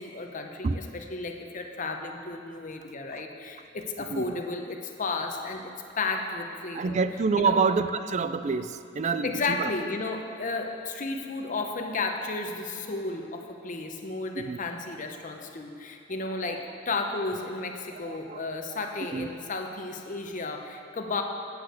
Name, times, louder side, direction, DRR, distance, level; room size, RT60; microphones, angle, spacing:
voice 1, 0.0-7.0 7.4-7.6 9.1-21.2, left 3 dB, 45° left, 4 dB, 0.9 m, -33 dB
voice 2, 6.7-9.7 14.4-14.6 18.0-18.4 19.1-19.3, right 5 dB, 35° right, 12 dB, 0.4 m, -27 dB
8.6 x 6.3 x 8.2 m, 2.6 s
head